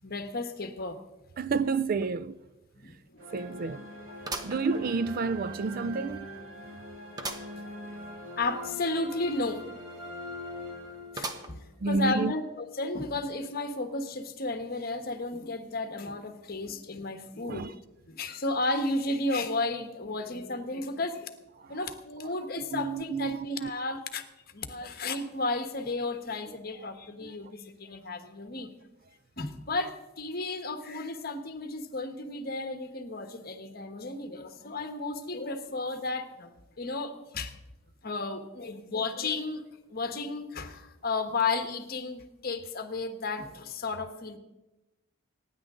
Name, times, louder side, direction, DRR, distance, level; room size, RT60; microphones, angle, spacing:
voice 1, 0.0-1.0 2.8-3.2 7.6-7.8 8.4-9.6 11.1-17.7 18.1-21.3 21.7-24.2 24.5-28.7 29.4-37.5 38.0-39.6 39.9-44.4, left 2 dB, 50° left, 1.4 m, -33 dB
voice 2, 1.4-2.4 3.3-3.9 4.4-6.3 11.8-12.3 17.4-17.7 21.6-21.8 22.7-23.7 27.2-27.3, right 4 dB, 45° right, 0.4 m, -30 dB
sound 1, 2.0-2.1 2.5-2.6 4.2-5.3 5.8-5.9 7.2-7.6 8.0-8.1 8.3-8.4 11.2-11.8 12.4-12.5 13.4-13.5, right 2 dB, 20° right, 1.1 m, -38 dB
sound 2, 3.2-11.5, left 1 dB, 80° right, 4.3 m, -42 dB
25.5 x 10.0 x 3.8 m
head